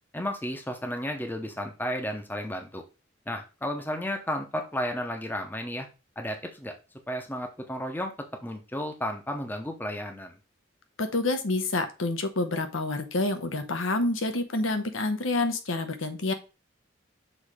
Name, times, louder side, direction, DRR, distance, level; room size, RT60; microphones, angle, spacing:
voice 1, 0.1-2.8 3.3-5.9 6.2-6.7 7.1-8.1 8.4-10.3, equal, 10° left, 4 dB, 0.7 m, -33 dB
voice 2, 11.0-16.3, left 2 dB, 90° left, 7 dB, 1.0 m, -28 dB
6.4 x 3.2 x 4.9 m, 0.31 s
head